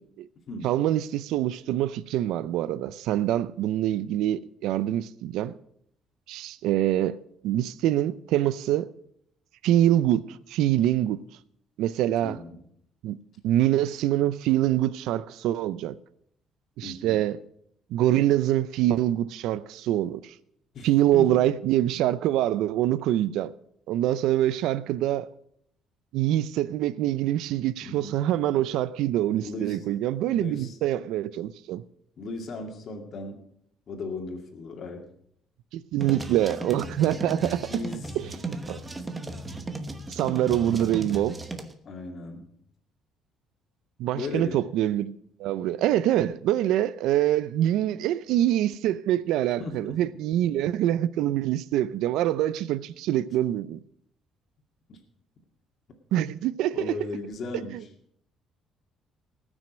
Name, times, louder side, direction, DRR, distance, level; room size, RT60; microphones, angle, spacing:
voice 1, 0.6-5.5 6.3-7.2 7.4-8.9 9.6-11.2 11.8-12.4 13.0-13.2 13.4-16.0 16.8-17.4 17.9-20.3 20.8-23.5 23.9-25.3 26.1-31.8 35.7-37.7 38.2-38.8 40.1-41.4 44.0-45.1 45.4-53.8 56.1-56.9, right 12 dB, 80° right, 0.6 m, -25 dB
voice 2, 12.2-12.6 16.8-17.2 20.7-21.5 27.8-28.2 29.4-29.8 30.3-30.8 32.2-33.4 33.9-35.1 37.7-38.2 41.9-42.5 44.1-44.6 49.6-50.0 54.9-55.0 56.7-57.9, left 3 dB, 45° left, 2.2 m, -36 dB
sound 1, 36.0-41.7, right 2 dB, 15° right, 1.0 m, -36 dB
18.5 x 6.3 x 6.2 m
cardioid pair, 150°, 0 cm